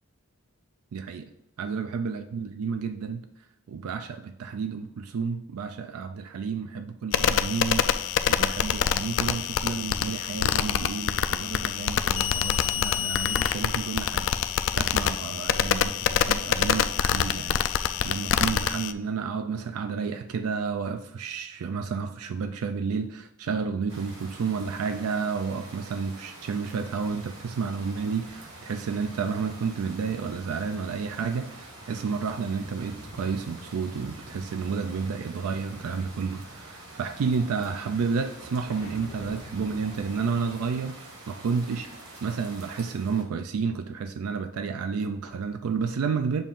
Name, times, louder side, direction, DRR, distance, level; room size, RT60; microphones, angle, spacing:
voice 1, 0.9-1.3 1.6-3.2 3.7-7.8 8.4-14.3 14.7-41.9 42.2-46.4, right 5 dB, 80° right, 0.4 m, -31 dB
Keyboard operating sounds, 7.1-18.9, left 8 dB, 60° left, 0.3 m, -26 dB
sound 1, 23.9-43.2, right 1 dB, 55° right, 1.3 m, -46 dB
sound 2, 38.6-40.8, left 1 dB, 85° left, 1.1 m, -46 dB
7.1 x 2.5 x 5.4 m
head